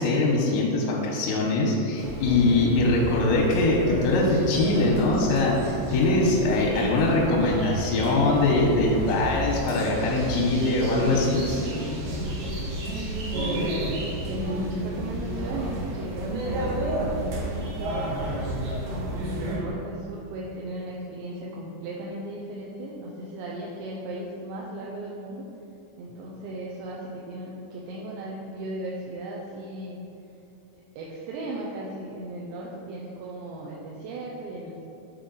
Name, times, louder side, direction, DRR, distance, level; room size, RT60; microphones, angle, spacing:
voice 1, 0.0-11.4, left 2 dB, 90° left, -3 dB, 3.1 m, -22 dB
sound 1, 2.0-19.6, right 1 dB, 65° right, 2.5 m, -31 dB
voice 2, 13.3-18.5 18.9-25.4 26.0-30.0 31.0-34.8, right 1 dB, 85° right, -3 dB, 2.8 m, -36 dB
7.7 x 4.3 x 3.9 m, 2.9 s
omnidirectional pair, 5.0 m